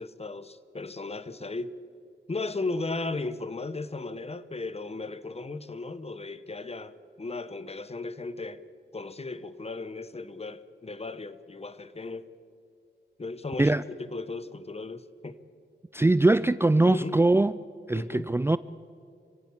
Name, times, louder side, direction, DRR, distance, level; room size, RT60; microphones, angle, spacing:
voice 1, 0.0-1.8 2.3-8.6 8.9-12.3 13.2-15.4 16.8-17.2 17.9-18.3, left 3 dB, 35° left, 1.1 m, -36 dB
voice 2, 15.9-17.5 17.9-18.6, right 2 dB, 15° right, 0.4 m, -22 dB
25.5 x 17.0 x 7.3 m
cardioid pair, 65°, 19 cm